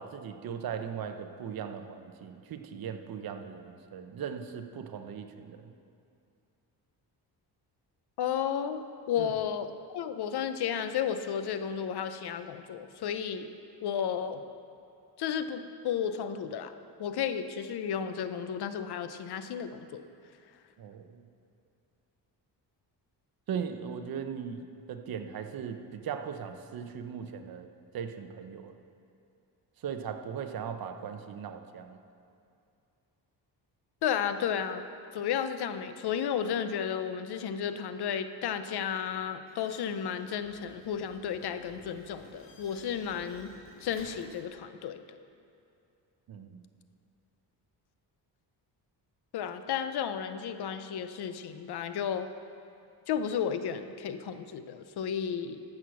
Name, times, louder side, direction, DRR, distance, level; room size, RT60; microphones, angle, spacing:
voice 1, 0.0-5.7 9.2-9.3 20.8-21.2 23.5-27.7 27.9-28.7 29.8-32.0 46.3-46.6, right 7 dB, 55° right, 6 dB, 0.9 m, -38 dB
voice 2, 8.2-13.5 13.8-14.4 15.2-16.7 17.0-20.0 34.0-34.8 35.1-43.5 43.8-45.2 49.3-52.3 53.1-55.6, left 8 dB, 65° left, 10 dB, 0.7 m, -33 dB
sound 1, 39.5-44.4, left 1 dB, 30° left, 2.0 m, -55 dB
14.0 x 6.6 x 5.9 m, 2.5 s
cardioid pair, 120°, 43 cm